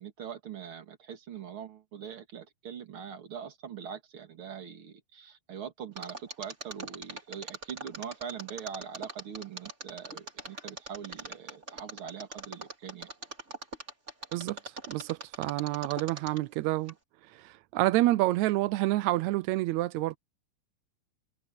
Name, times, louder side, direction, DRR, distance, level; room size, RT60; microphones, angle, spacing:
voice 1, 0.0-13.1, right 8 dB, 45° right, 2.6 m, -42 dB
Mechanisms, 6.0-16.5 16.9-17.0, right 2 dB, 20° right, 3.7 m, -41 dB
voice 2, 14.3-16.9 17.3-20.2, right 17 dB, 90° right, 1.6 m, -28 dB
omnidirectional pair, 3.9 m